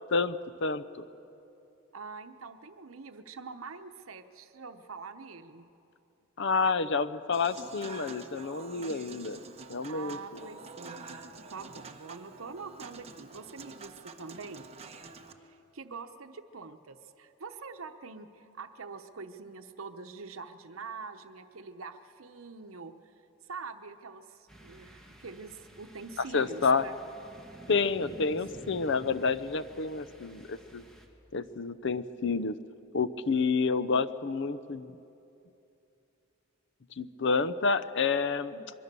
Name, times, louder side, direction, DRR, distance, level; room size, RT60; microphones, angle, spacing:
voice 1, 0.1-1.1 6.4-9.4 9.7-10.2 26.3-26.8 27.7-30.8 31.3-32.6 32.9-35.0 37.0-38.5, left 4 dB, 60° left, 14 dB, 0.7 m, -29 dB
voice 2, 1.9-5.7 9.9-11.2 11.5-14.7 15.4-23.1 23.4-26.9 28.0-28.3 38.5-38.7, right 4 dB, 85° right, 8 dB, 0.9 m, -45 dB
Human voice / Acoustic guitar / Piano, 7.3-15.3, right 4 dB, 30° right, 1.2 m, -47 dB
sound 1, 24.5-31.1, right 1 dB, 5° left, 2.1 m, -51 dB
24.5 x 22.5 x 6.8 m, 2.8 s
head